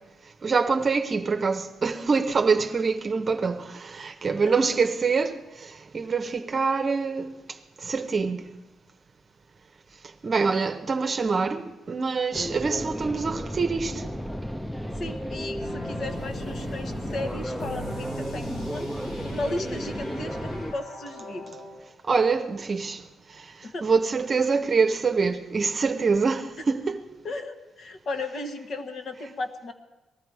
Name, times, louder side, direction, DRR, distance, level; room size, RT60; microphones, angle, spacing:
voice 1, 0.4-8.5 10.2-14.0 22.0-23.0 23.3-27.0, right 4 dB, 40° right, 0.8 m, -25 dB
voice 2, 4.3-4.6 15.0-18.9 19.2-21.4 23.6-23.9 27.2-29.7, left 2 dB, 60° left, 1.4 m, -35 dB
sound 1, 12.3-20.7, equal, ahead, 0.5 m, -33 dB
sound 2, 15.6-21.8, equal, 80° left, 5.2 m, -41 dB
19.5 x 13.5 x 4.7 m
cardioid pair, 90°, 0 cm